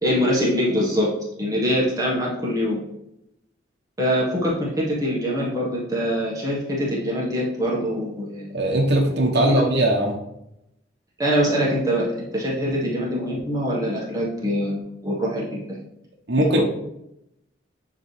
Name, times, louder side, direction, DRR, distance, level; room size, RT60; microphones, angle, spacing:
voice 1, 0.0-2.8 4.0-8.5 9.5-9.7 11.2-15.8, equal, 20° right, -6 dB, 1.4 m, -24 dB
voice 2, 8.5-10.2 16.3-16.6, right 1 dB, 65° right, -1 dB, 1.0 m, -20 dB
9.3 x 3.1 x 3.3 m, 0.81 s
head